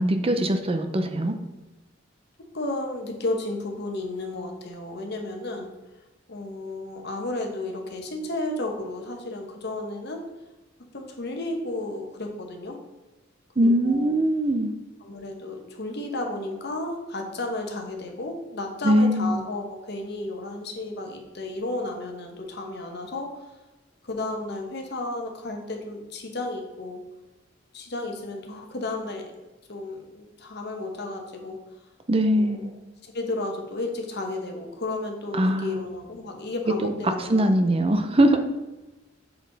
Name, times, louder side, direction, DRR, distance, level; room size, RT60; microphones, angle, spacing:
voice 1, 0.0-1.4 13.6-14.7 18.8-19.4 32.1-32.7 35.3-35.8 37.0-38.4, right 1 dB, 30° right, 7 dB, 0.5 m, -21 dB
voice 2, 2.5-5.7 6.3-10.2 10.9-12.8 13.6-14.1 15.0-23.3 24.0-27.0 27.7-29.3 29.7-31.6 32.2-32.6 33.0-37.5, left 2 dB, 60° left, 2 dB, 1.1 m, -33 dB
7.0 x 4.2 x 4.0 m, 1.1 s
head